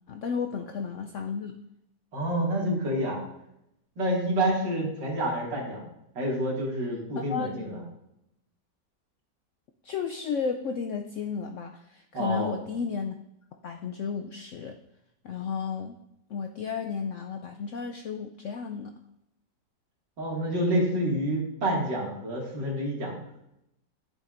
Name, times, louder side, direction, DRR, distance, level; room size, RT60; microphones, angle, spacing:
voice 1, 0.1-1.6 7.1-7.5 9.8-13.2 13.6-14.8 15.2-16.0 16.3-18.9, left 6 dB, 90° left, 5 dB, 0.6 m, -33 dB
voice 2, 2.1-3.2 4.0-5.8 6.2-7.8 12.1-12.6 20.2-23.1, right 1 dB, 85° right, -3 dB, 2.8 m, -28 dB
11.5 x 6.7 x 2.5 m, 0.82 s
omnidirectional pair, 1.9 m